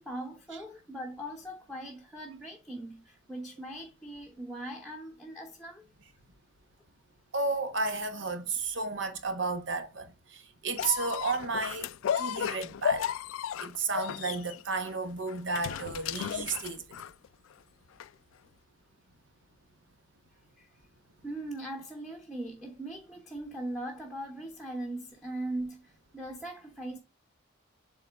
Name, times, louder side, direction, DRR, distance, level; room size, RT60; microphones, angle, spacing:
voice 1, 0.0-5.8 20.6-20.7 21.2-27.0, right 1 dB, ahead, 0.9 m, -40 dB
voice 2, 7.3-11.9 12.2-13.1 13.6-16.8, right 3 dB, 65° right, 1.2 m, -32 dB
sound 1, 10.8-17.3 18.0-18.1, left 9 dB, 85° left, 0.3 m, -34 dB
7.6 x 3.8 x 3.5 m
head